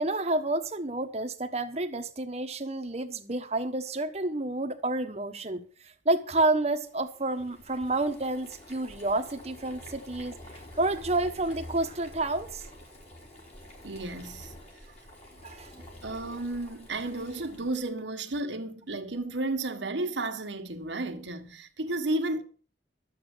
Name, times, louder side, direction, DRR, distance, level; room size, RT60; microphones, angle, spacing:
voice 1, 0.0-10.4 10.7-12.6 15.4-15.8, right 2 dB, 35° right, 1.2 m, -29 dB
Boiling, 6.6-17.9, left 1 dB, 35° left, 4.0 m, -48 dB
voice 2, 13.8-14.5 16.0-22.4, right 2 dB, 85° right, 1.6 m, -33 dB
12.5 x 7.9 x 6.2 m
head